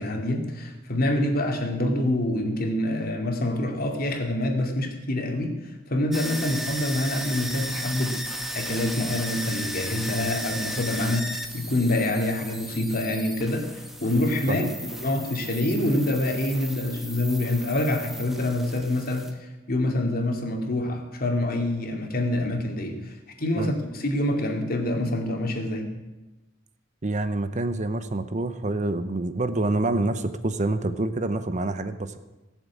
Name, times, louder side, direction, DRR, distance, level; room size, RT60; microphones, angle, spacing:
voice 1, 0.0-5.5 5.9-8.2 8.5-14.7 15.0-25.9, left 1 dB, 50° left, 3 dB, 2.3 m, -26 dB
sound 1, 6.1-19.3, equal, ahead, 1.2 m, -35 dB
voice 2, 27.0-32.2, right 2 dB, 40° right, 11 dB, 0.8 m, -27 dB
17.5 x 7.4 x 8.5 m, 1.1 s
head